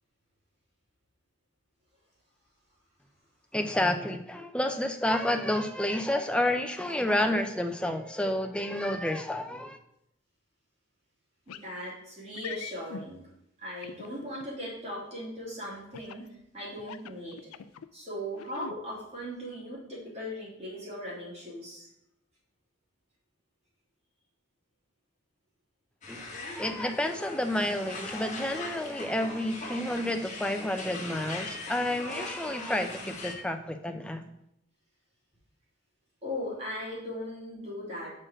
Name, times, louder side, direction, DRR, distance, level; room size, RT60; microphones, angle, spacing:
voice 1, 3.5-9.8 26.1-26.2 26.5-34.2, left 1 dB, 5° left, 6 dB, 0.5 m, -30 dB
sound 1, 11.5-11.7 12.3-13.0 13.8-14.4 15.9-16.3 16.8-17.9 18.3-18.8, left 7 dB, 90° left, 0.4 m, -42 dB
voice 2, 11.5-13.2 13.6-16.2 16.5-17.4 17.9-21.9 36.2-38.1, equal, 30° right, -7 dB, 3.2 m, -38 dB
sound 2, 26.0-33.3, left 2 dB, 35° left, 1.5 m, -41 dB
6.2 x 4.4 x 6.3 m, 0.78 s
head